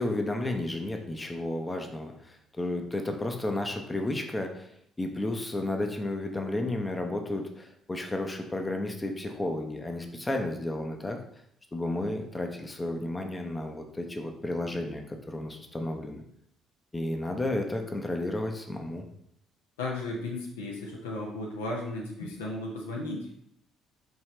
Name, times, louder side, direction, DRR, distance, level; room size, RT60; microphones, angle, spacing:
voice 1, 0.0-4.7 5.0-11.2 11.7-16.2 16.9-19.1, left 2 dB, 20° left, 4 dB, 0.6 m, -32 dB
voice 2, 19.8-23.2, left 2 dB, 80° left, -1 dB, 0.7 m, -35 dB
4.5 x 3.2 x 3.1 m, 0.70 s
figure-of-eight pair, 50°, 0 cm